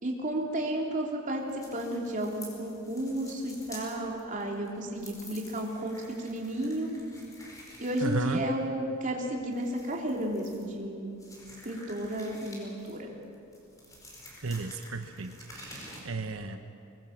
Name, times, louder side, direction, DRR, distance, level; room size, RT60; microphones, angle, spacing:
voice 1, 0.0-6.9 7.8-11.2 11.6-13.1, right 1 dB, 40° right, -1 dB, 3.3 m, -33 dB
sound 1, 1.3-16.0, left 1 dB, 15° left, 4.9 m, -50 dB
voice 2, 8.0-8.4 14.4-16.6, right 3 dB, 85° right, 6 dB, 1.1 m, -34 dB
24.5 x 21.0 x 7.4 m, 2.6 s
head